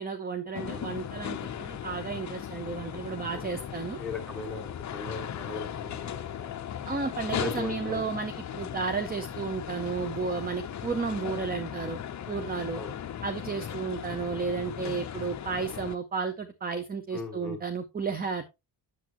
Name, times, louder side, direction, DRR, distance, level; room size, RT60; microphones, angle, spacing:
voice 1, 0.0-4.0 6.9-12.0 12.3-12.8 13.2-18.4, right 5 dB, 20° right, 9 dB, 0.5 m, -33 dB
sound 1, 0.5-16.0, left 9 dB, 40° left, 0.6 m, -37 dB
voice 2, 3.3-3.7 4.0-6.7 7.3-8.1 12.7-13.2 13.5-13.6 17.1-17.6, left 3 dB, ahead, -1 dB, 2.1 m, -39 dB
8.2 x 7.2 x 2.9 m, 0.24 s
wide cardioid pair, 160°, 44 cm